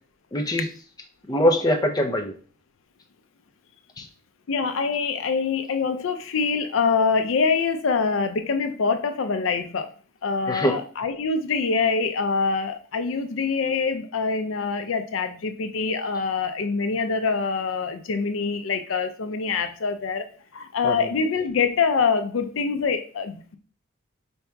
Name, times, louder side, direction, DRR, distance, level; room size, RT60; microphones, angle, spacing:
voice 1, 0.3-0.7 1.3-2.4 4.0-4.1 10.5-10.8 20.8-21.0, equal, 20° left, 2 dB, 0.5 m, -22 dB
voice 2, 4.5-9.9 10.2-20.3 20.5-23.6, left 5 dB, 75° left, 8 dB, 0.5 m, -25 dB
4.6 x 2.8 x 3.3 m, 0.39 s
head